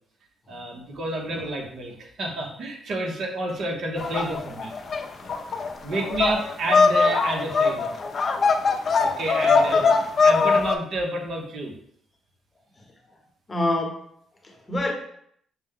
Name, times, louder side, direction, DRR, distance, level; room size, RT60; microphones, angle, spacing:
voice 1, 0.5-4.7 5.2-5.3 5.8-7.9 9.0-11.7, right 2 dB, 60° right, 1 dB, 1.0 m, -30 dB
sound 1, 4.0-10.8, left 4 dB, 45° left, 0.5 m, -21 dB
voice 2, 9.6-9.9 13.5-14.0 14.4-14.9, left 1 dB, 25° left, 1 dB, 0.9 m, -27 dB
6.1 x 2.2 x 3.6 m, 0.66 s
cardioid pair, 90°, 0 cm